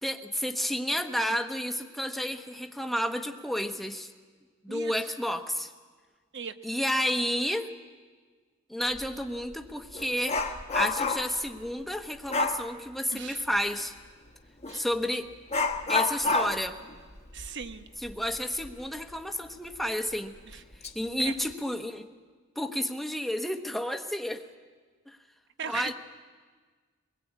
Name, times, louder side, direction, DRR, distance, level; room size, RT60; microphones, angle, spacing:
voice 1, 0.0-4.1 4.6-5.7 6.6-7.7 8.7-10.4 10.7-13.9 14.7-15.3 15.9-16.8 18.0-20.3 20.9-22.1 22.6-24.4 25.1-25.2 25.6-25.9, equal, ahead, 5 dB, 1.1 m, -31 dB
voice 2, 6.3-6.8 13.1-13.4 14.7-14.8 17.3-17.8 20.5-20.6 21.2-21.3 25.6-25.9, right 6 dB, 60° right, 9 dB, 1.1 m, -38 dB
Dog, 8.9-9.1 9.5-11.4 12.3-12.7 14.6-14.8 15.5-18.8 19.1-19.2 19.7-19.8 20.5-20.9 21.3-21.5, left 3 dB, 30° left, 1.3 m, -30 dB
23.0 x 21.0 x 8.4 m, 1.5 s
head